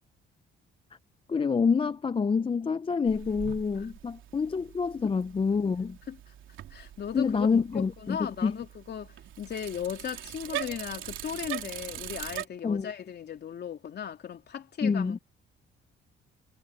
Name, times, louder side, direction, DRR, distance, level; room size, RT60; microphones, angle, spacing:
voice 1, 1.3-6.0 7.1-8.6 12.6-12.9 14.8-15.2, left 5 dB, 25° left, 0.6 m, -27 dB
Bicycle, 3.1-12.4, right 12 dB, 80° right, 3.3 m, -41 dB
voice 2, 6.7-7.5 7.7-15.2, left 8 dB, 55° left, 3.2 m, -37 dB
cardioid pair, 90°, 20 cm